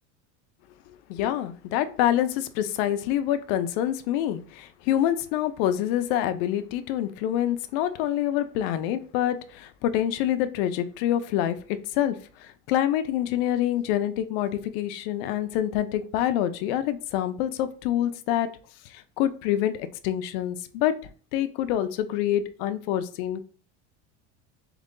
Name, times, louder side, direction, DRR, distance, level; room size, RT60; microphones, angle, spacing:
voice 1, 1.1-11.6 11.9-18.5 18.9-20.9 21.3-23.4, left 11 dB, 60° left, 11 dB, 0.6 m, -26 dB
3.8 x 3.1 x 3.7 m, 0.40 s
cardioid pair, 160°, 33 cm